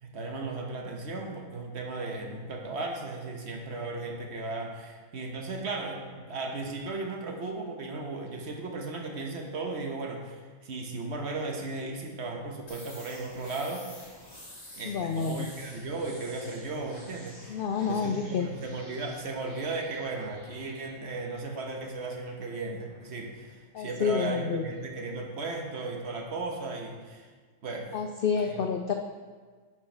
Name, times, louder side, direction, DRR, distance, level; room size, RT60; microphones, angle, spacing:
voice 1, 0.0-13.8 14.7-27.3 27.6-27.9 28.4-28.6, right 3 dB, 55° right, 2 dB, 1.2 m, -36 dB
sound 1, 12.7-24.3, left 1 dB, 30° left, 1.8 m, -51 dB
voice 2, 14.8-15.5 17.5-18.5 23.7-24.6 27.9-28.9, left 6 dB, 80° left, 5 dB, 0.4 m, -29 dB
10.5 x 4.5 x 4.4 m, 1.5 s
omnidirectional pair, 1.5 m